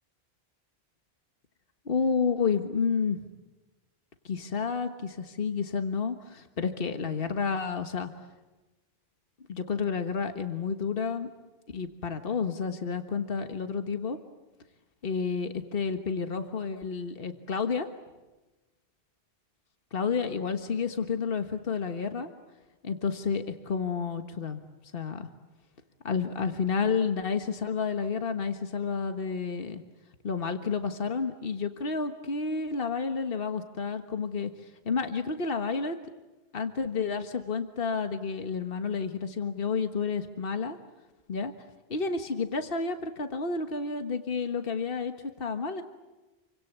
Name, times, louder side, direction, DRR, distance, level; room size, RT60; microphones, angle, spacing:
voice 1, 1.8-3.3 4.2-8.1 9.5-11.3 11.7-14.2 15.0-17.9 19.9-22.3 22.8-24.6 24.9-25.3 26.0-29.8 30.2-36.0 36.5-40.8 41.3-41.5 41.9-45.8, left 5 dB, 65° left, 7 dB, 1.7 m, -30 dB
29.0 x 24.5 x 8.1 m, 1.1 s
omnidirectional pair, 1.0 m